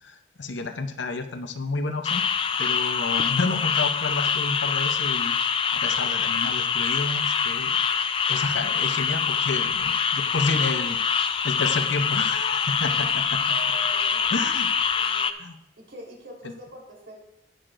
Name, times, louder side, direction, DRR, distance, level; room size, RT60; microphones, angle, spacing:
voice 1, 0.0-2.2 2.6-5.3 5.7-7.8 8.3-13.4 14.3-14.7 15.4-15.5, left 3 dB, 75° left, 8 dB, 0.7 m, -30 dB
sound 1, 2.0-15.3, left 6 dB, 30° left, 0.3 m, -25 dB
voice 2, 13.5-14.2 14.7-15.3 15.8-17.1, right 2 dB, 80° right, -2 dB, 3.7 m, -43 dB
17.5 x 6.4 x 2.6 m, 0.84 s
head